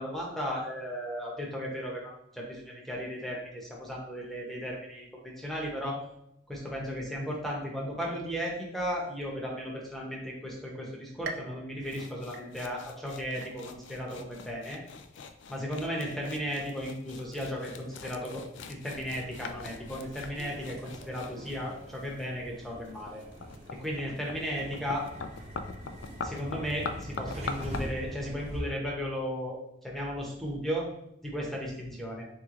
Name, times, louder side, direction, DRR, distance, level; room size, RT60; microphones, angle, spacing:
voice 1, 0.0-6.0 6.5-14.8 15.5-23.2 23.8-25.1 26.0-29.6 29.8-30.9 31.2-32.2, equal, ahead, -3 dB, 0.9 m, -35 dB
sound 1, 11.2-13.0 13.4-14.0 14.5-14.6 15.6-15.7, right 3 dB, 55° right, 0.4 m, -43 dB
sound 2, 11.8-27.8, left 4 dB, 75° left, 0.4 m, -43 dB
sound 3, 18.9-28.6, equal, 35° right, 0.8 m, -44 dB
3.5 x 3.1 x 3.7 m, 0.78 s
head